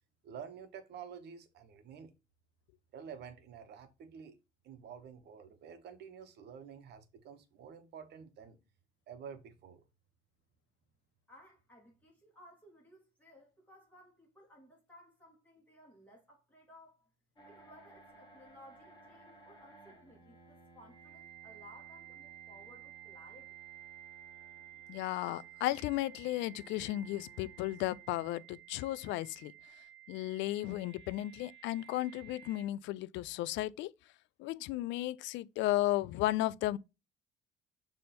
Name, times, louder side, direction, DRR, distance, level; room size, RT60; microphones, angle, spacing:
voice 1, 0.2-2.1 2.9-4.4 4.6-8.6 9.1-9.8, right 7 dB, 65° right, 1.2 m, -49 dB
voice 2, 11.3-17.1 17.4-23.5, equal, 10° left, 3.1 m, -59 dB
sound 1, 17.4-32.6, right 9 dB, 25° left, 2.1 m, -54 dB
voice 3, 24.9-29.5 30.1-33.9 34.4-36.8, left 16 dB, 90° left, 0.4 m, -34 dB
6.6 x 3.4 x 4.3 m
cardioid pair, 135°, 18 cm